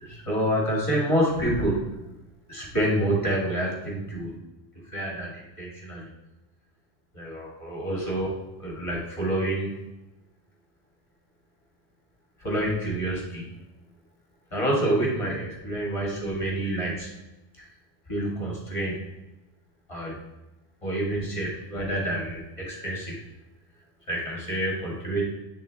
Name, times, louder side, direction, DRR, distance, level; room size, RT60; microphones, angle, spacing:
voice 1, 0.0-2.0 2.5-4.4 4.9-6.1 7.1-8.3 8.6-9.9 12.4-13.5 14.5-17.1 17.6-17.7 18.1-19.1 19.9-20.2 20.8-23.2 24.1-25.2, right 1 dB, 30° left, -3 dB, 1.8 m, -28 dB
8.6 x 3.8 x 3.4 m, 0.99 s
omnidirectional pair, 1.1 m